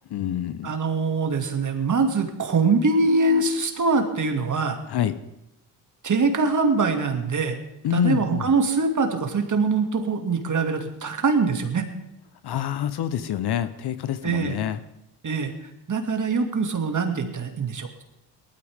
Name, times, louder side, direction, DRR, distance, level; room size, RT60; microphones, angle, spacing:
voice 1, 0.1-0.7 4.9-5.1 7.8-8.4 12.4-14.8, left 10 dB, 50° left, 12 dB, 1.0 m, -26 dB
voice 2, 0.6-4.8 6.0-7.6 7.9-11.9 14.2-14.5 15.2-15.5 15.9-18.0, right 4 dB, 35° right, 5 dB, 2.5 m, -23 dB
18.5 x 13.0 x 3.7 m, 0.85 s
supercardioid pair, 65°, 49 cm